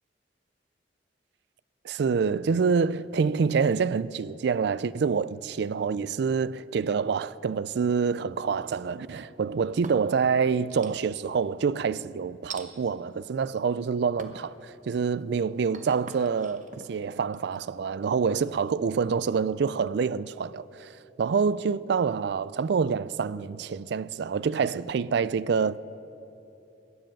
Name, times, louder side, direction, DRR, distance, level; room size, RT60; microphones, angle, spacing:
voice 1, 1.8-25.8, right 5 dB, 65° right, 0.4 m, -27 dB
sound 1, 8.4-9.1 9.6-10.3 10.7-11.3 12.5-12.7 13.4-13.8 14.2-14.5 15.0-18.7, right 4 dB, 45° right, 1.0 m, -45 dB
20.5 x 7.7 x 8.9 m
head